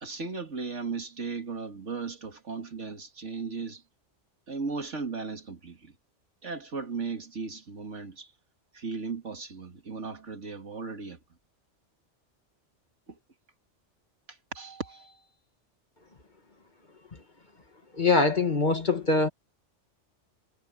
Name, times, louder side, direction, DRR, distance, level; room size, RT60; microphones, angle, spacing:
voice 1, 0.0-3.8 4.5-5.9 6.4-8.3 8.7-11.2 14.5-15.1, right 4 dB, 75° right, 2.7 m, -36 dB
voice 2, 18.0-19.3, left 3 dB, 40° left, 1.9 m, -23 dB
omnidirectional pair, 1.2 m